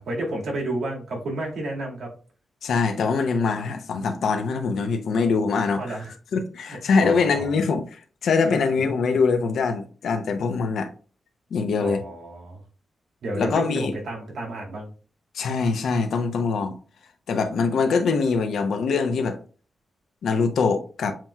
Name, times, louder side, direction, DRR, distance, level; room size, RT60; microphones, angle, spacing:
voice 1, 0.0-2.1 5.8-6.1 7.0-7.6 8.5-8.6 11.8-12.6 13.2-14.9, right 1 dB, 75° right, 1.9 m, -31 dB
voice 2, 2.6-6.0 6.3-10.9 11.5-12.0 13.3-13.9 15.3-16.8 17.3-19.4 20.2-21.1, left 4 dB, 80° left, 0.7 m, -23 dB
7.5 x 2.9 x 2.3 m
wide cardioid pair, 125°, 0 cm